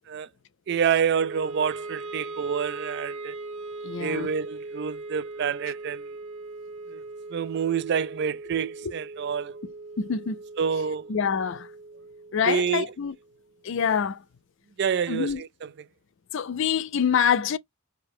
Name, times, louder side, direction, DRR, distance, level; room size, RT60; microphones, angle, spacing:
voice 1, 0.7-3.3 4.0-6.0 6.9-7.0 7.3-9.6 10.6-11.1 12.5-12.8 14.8-15.9, right 7 dB, 50° right, 0.3 m, -27 dB
Wind instrument woodwind instrument, 1.2-13.4, right 3 dB, 70° right, 1.3 m, -40 dB
voice 2, 3.8-4.3 10.0-10.4 11.1-11.7 12.3-13.1 13.6-14.2 15.1-15.4 16.3-17.6, left 7 dB, 60° left, 0.4 m, -25 dB
4.7 x 2.0 x 4.7 m
head